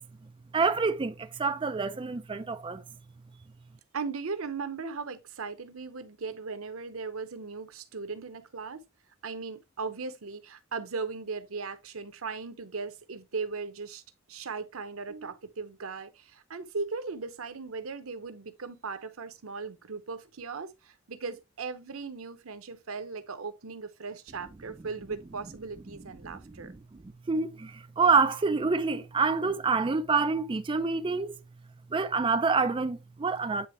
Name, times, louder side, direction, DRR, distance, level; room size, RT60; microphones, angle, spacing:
voice 1, 0.5-2.8 26.2-26.8 27.3-31.4 31.9-33.7, right 4 dB, 25° right, 0.4 m, -27 dB
voice 2, 3.9-8.8 9.2-14.0 14.3-26.7, right 4 dB, 90° right, 0.8 m, -38 dB
9.3 x 3.5 x 3.0 m
head